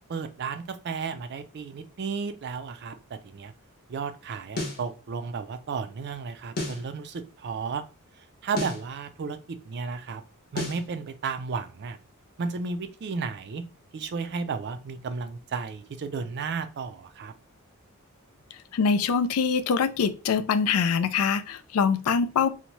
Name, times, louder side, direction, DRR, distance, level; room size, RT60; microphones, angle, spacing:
voice 1, 0.1-2.9 3.2-3.5 3.9-7.8 8.4-10.2 10.5-12.0 12.4-13.6 13.9-17.3, right 5 dB, 50° right, 0.3 m, -33 dB
sound 1, 4.6-4.9 6.6-6.9 8.6-8.9 10.6-10.9, left 2 dB, 45° left, 0.8 m, -31 dB
voice 2, 18.7-22.5, left 6 dB, 80° left, 0.4 m, -24 dB
2.7 x 2.1 x 3.0 m
head